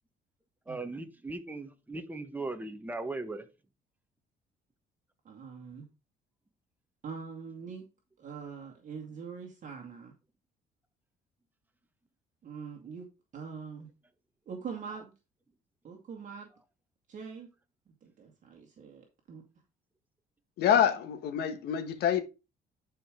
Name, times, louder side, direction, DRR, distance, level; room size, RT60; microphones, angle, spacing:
voice 1, 0.7-3.5, right 2 dB, 10° right, 1.2 m, -38 dB
voice 2, 5.2-5.9 7.0-7.8 8.2-10.1 12.4-13.1 13.3-13.9 14.5-15.1 15.8-16.5 17.1-17.5 17.9-19.4, right 6 dB, 45° right, 2.0 m, -43 dB
voice 3, 20.6-22.2, left 9 dB, 75° left, 1.5 m, -26 dB
11.0 x 5.1 x 3.8 m
cardioid pair, 110°, 17 cm